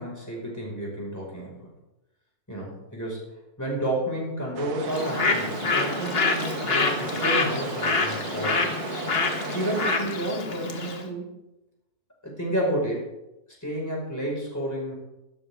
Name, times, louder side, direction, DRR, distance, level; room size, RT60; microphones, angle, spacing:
voice 1, 0.0-1.7 2.5-3.3 3.6-8.7 9.5-11.4 12.2-13.1 13.6-15.0, right 1 dB, 10° left, -3 dB, 5.2 m, -31 dB
sound 1, 4.6-10.0, right 5 dB, 85° right, 1.6 m, -35 dB
Bird, 4.9-11.0, left 3 dB, 40° left, 1.5 m, -27 dB
15.5 x 12.5 x 3.6 m, 0.96 s
omnidirectional pair, 1.6 m